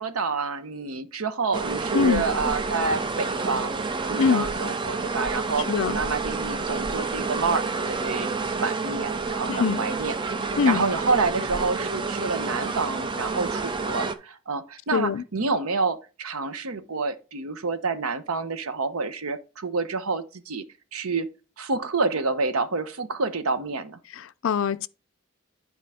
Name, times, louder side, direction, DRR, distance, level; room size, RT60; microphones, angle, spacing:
voice 1, 0.0-3.7 4.0-8.3 8.6-10.2 10.6-20.6 20.9-21.3 21.6-24.0, right 4 dB, 90° right, 0.8 m, -28 dB
sound 1, 1.5-14.1, right 4 dB, 20° right, 0.4 m, -29 dB
voice 2, 1.9-2.2 4.2-4.5 5.7-6.0 9.5-9.8 10.6-10.9 14.9-15.2 24.2-24.9, left 6 dB, 70° left, 0.4 m, -23 dB
10.0 x 4.6 x 3.5 m
head